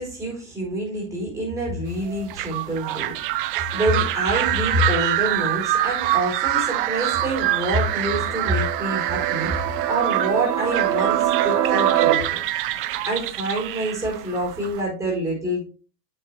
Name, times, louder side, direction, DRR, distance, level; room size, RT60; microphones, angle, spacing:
voice 1, 0.0-3.1 3.4-12.4 13.1-15.7, right 1 dB, 5° right, -4 dB, 4.2 m, -26 dB
sound 1, 2.0-14.8, right 14 dB, 35° right, 0.5 m, -26 dB
sound 2, 6.6-12.1, right 11 dB, 80° right, 1.9 m, -25 dB
8.8 x 7.1 x 3.4 m, 0.37 s
supercardioid pair, 165°, 48 cm